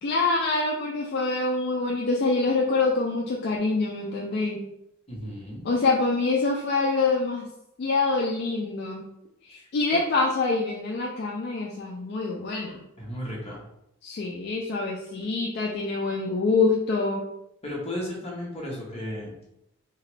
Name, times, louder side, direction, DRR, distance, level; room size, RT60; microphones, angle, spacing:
voice 1, 0.0-4.6 5.6-7.4 7.8-9.1 9.4-12.8 14.0-17.2, left 3 dB, 50° left, -1 dB, 0.3 m, -25 dB
voice 2, 5.1-5.6 13.0-13.6 17.6-19.4, left 1 dB, 30° left, -4 dB, 0.9 m, -34 dB
2.9 x 2.4 x 3.1 m, 0.83 s
head